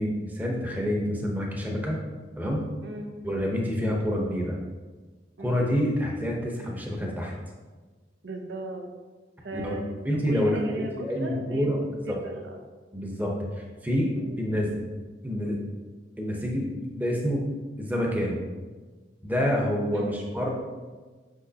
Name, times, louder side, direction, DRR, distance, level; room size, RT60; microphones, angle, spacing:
voice 1, 0.0-2.0 2.4-2.6 3.2-4.6 5.4-7.3 9.5-9.8 10.0-11.9 12.9-13.5 13.8-14.1 14.4-14.9 15.2-15.6 16.2-17.5 17.8-18.4 19.2-20.6, equal, 10° right, -1 dB, 0.8 m, -27 dB
voice 2, 2.8-3.2 5.4-5.7 8.2-8.9 9.4-9.9 10.3-11.7 12.1-12.6 14.1-14.4 19.9-20.2, equal, 85° right, 3 dB, 0.8 m, -36 dB
6.2 x 5.7 x 2.8 m, 1.3 s
head